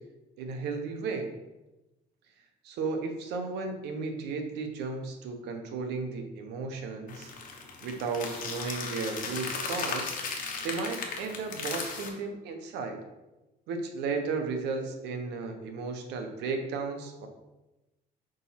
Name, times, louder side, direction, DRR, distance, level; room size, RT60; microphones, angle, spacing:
voice 1, 0.4-1.3 2.6-7.3 7.8-10.1 10.6-13.0 13.7-17.3, right 4 dB, 85° right, 5 dB, 1.0 m, -34 dB
sound 1, 7.1-12.1, left 4 dB, 55° left, 1.3 m, -36 dB
5.3 x 4.1 x 5.8 m, 1.0 s
cardioid pair, 110°, 17 cm